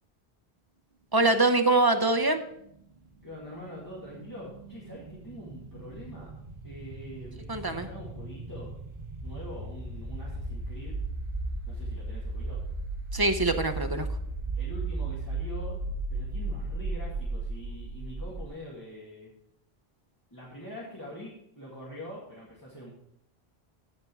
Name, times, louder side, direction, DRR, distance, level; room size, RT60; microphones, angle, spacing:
voice 1, 1.1-2.4 7.5-7.9 13.1-14.1, right 2 dB, 25° right, 7 dB, 0.6 m, -24 dB
sound 1, 2.6-18.5, right 2 dB, 60° right, 1.6 m, -36 dB
voice 2, 3.2-6.3 6.6-8.7 9.2-11.0 11.7-12.6 14.5-15.8 16.1-19.3 20.3-22.9, left 1 dB, 20° left, -6 dB, 2.1 m, -44 dB
14.5 x 5.2 x 4.7 m, 0.74 s
omnidirectional pair, 1.1 m